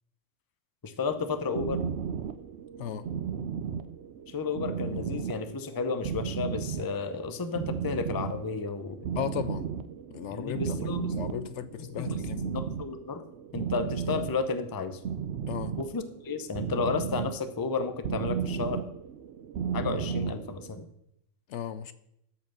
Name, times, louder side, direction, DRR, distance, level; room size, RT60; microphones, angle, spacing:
voice 1, 0.8-1.8 4.3-9.0 10.3-11.5 11.8-13.2 13.5-15.0 15.8-18.8 19.7-20.9, left 4 dB, 25° left, 0.5 m, -32 dB
sound 1, 1.0-20.8, right 7 dB, 65° right, 0.9 m, -35 dB
voice 2, 9.2-9.7 10.1-12.5 15.5-15.7 21.5-21.9, left 9 dB, 70° left, 0.8 m, -36 dB
12.5 x 4.8 x 6.2 m
omnidirectional pair, 1.3 m